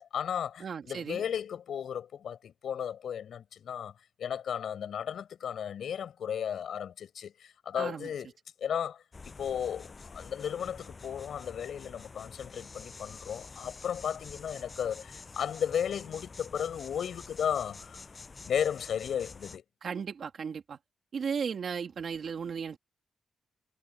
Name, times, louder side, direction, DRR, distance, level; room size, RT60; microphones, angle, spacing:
voice 1, 0.0-8.3 8.6-18.0 18.4-19.6, left 8 dB, 75° left, 4.7 m, -34 dB
voice 2, 0.6-1.2 7.8-8.1 19.8-20.8 21.1-22.8, right 6 dB, 55° right, 2.6 m, -35 dB
sound 1, 9.1-19.6, left 4 dB, 30° left, 7.5 m, -48 dB
wide cardioid pair, 135°, 0 cm